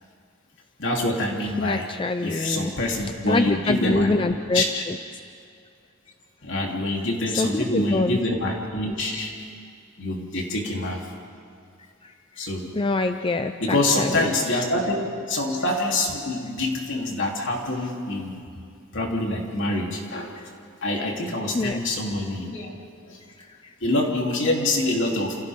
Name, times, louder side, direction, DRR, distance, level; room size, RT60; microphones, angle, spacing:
voice 1, 0.8-1.9 2.2-4.2 4.5-4.8 6.4-9.3 10.0-11.0 12.4-12.7 13.6-18.4 18.9-20.3 20.8-22.7 23.1-23.2 23.8-25.4, left 2 dB, 65° left, -1 dB, 3.5 m, -25 dB
voice 2, 1.6-2.7 3.0-5.0 7.4-8.2 10.7-10.9 12.0-12.5 12.7-14.6 20.4-20.5 21.5-21.8 23.5-23.7, left 2 dB, 25° left, 8 dB, 0.5 m, -26 dB
29.0 x 29.0 x 3.8 m, 2.3 s
head